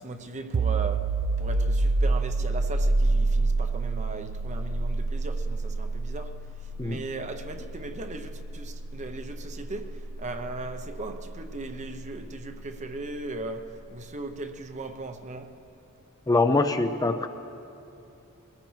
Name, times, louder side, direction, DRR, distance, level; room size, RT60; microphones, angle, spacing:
voice 1, 0.0-6.4 6.8-15.6, right 2 dB, 35° right, 0.7 m, -38 dB
sound 1, 0.5-12.0, right 3 dB, 70° right, 0.5 m, -28 dB
voice 2, 16.3-17.3, left 3 dB, 15° left, 0.4 m, -23 dB
21.5 x 16.5 x 3.2 m
head